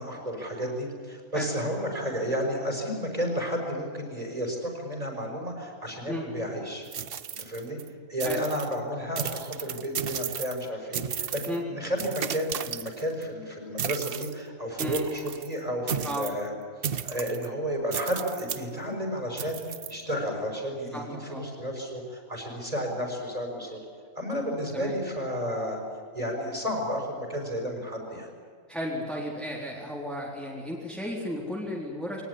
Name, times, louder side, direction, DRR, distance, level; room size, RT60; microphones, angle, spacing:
voice 1, 0.0-6.9 7.4-7.8 8.1-16.5 17.0-19.6 19.9-23.8 24.2-25.8 26.1-28.3, equal, 30° right, 1 dB, 6.0 m, -32 dB
sound 1, 6.8-7.9 8.2-8.7 9.2-10.7 10.9-11.6 12.0-13.2 13.8-14.3 14.8-15.5 15.9-16.4 16.8-17.5 17.9-18.6 19.4-19.9, right 8 dB, 50° right, 0.9 m, -34 dB
voice 2, 20.9-21.5 24.7-25.0 28.7-32.2, equal, ahead, -3 dB, 4.0 m, -34 dB
23.0 x 19.0 x 10.0 m, 2.1 s
omnidirectional pair, 1.4 m